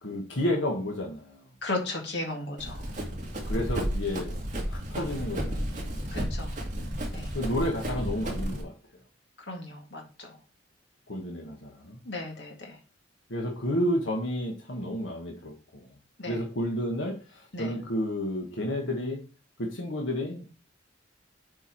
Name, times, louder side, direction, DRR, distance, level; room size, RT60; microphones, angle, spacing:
voice 1, 0.0-1.4 3.5-4.3 4.7-6.0 7.3-8.7 11.1-12.0 13.3-15.9 16.3-19.2 19.6-20.5, left 1 dB, 85° left, 0 dB, 1.7 m, -31 dB
voice 2, 1.6-2.8 6.1-6.5 7.1-7.3 9.5-10.0 12.1-12.8 16.2-16.4 17.5-17.8, left 2 dB, 65° left, 0 dB, 2.0 m, -35 dB
Run, 2.6-8.6, equal, 40° right, 2.3 m, -32 dB
8.0 x 4.7 x 4.6 m, 0.34 s
head